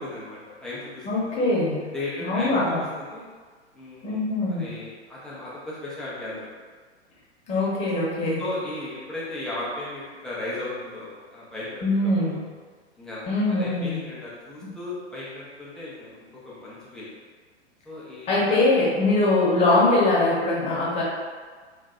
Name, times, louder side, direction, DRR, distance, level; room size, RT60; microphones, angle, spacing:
voice 1, 0.0-1.3 1.9-3.2 3.7-6.5 8.4-12.4 13.0-17.1 17.8-18.6 18.9-19.0, left 2 dB, ahead, -8 dB, 0.3 m, -36 dB
voice 2, 1.0-1.8 2.2-2.8 4.0-4.7 7.5-8.4 11.8-12.4 13.3-14.0 14.6-14.7 18.3-21.0, left 2 dB, 20° left, -6 dB, 0.8 m, -22 dB
3.1 x 2.5 x 2.4 m, 1.5 s
figure-of-eight pair, 100°, 34 cm